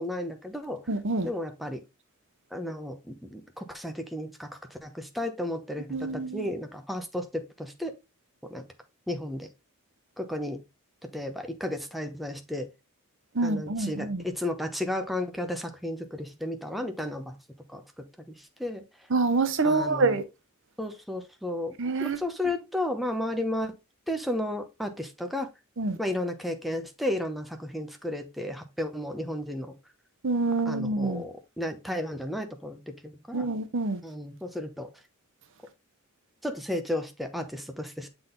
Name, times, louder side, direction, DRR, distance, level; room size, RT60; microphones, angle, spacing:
voice 1, 0.0-0.8 1.2-1.8 2.5-7.9 8.5-8.6 9.1-9.5 10.2-10.6 11.0-12.7 13.4-17.3 17.7-18.8 19.6-20.1 20.8-21.7 22.0-23.8 24.1-25.5 26.0-29.7 30.7-33.0 33.3-33.5 34.0-34.9 36.4-38.1, left 1 dB, ahead, 0.8 m, -33 dB
voice 2, 0.9-1.3 5.9-6.4 13.4-14.2 19.1-20.2 21.8-22.2 25.8-26.0 30.2-31.2 33.3-34.0, right 3 dB, 60° right, 0.8 m, -26 dB
7.4 x 4.0 x 3.8 m
head